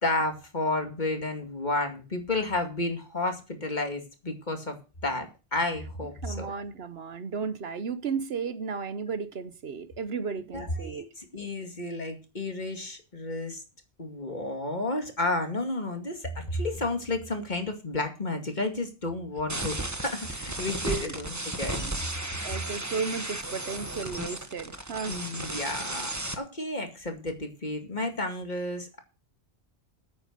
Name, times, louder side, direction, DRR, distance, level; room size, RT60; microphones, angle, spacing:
voice 1, 0.0-4.8 5.0-6.5 10.5-13.6 14.0-21.8 25.1-26.1 26.4-29.0, left 2 dB, 40° left, 2.4 m, -31 dB
voice 2, 6.2-11.1 20.8-21.1 21.8-21.9 22.4-25.2, right 5 dB, 65° right, 1.1 m, -34 dB
sound 1, 19.5-26.3, right 2 dB, 15° right, 1.2 m, -34 dB
9.2 x 8.7 x 6.5 m
omnidirectional pair, 1.1 m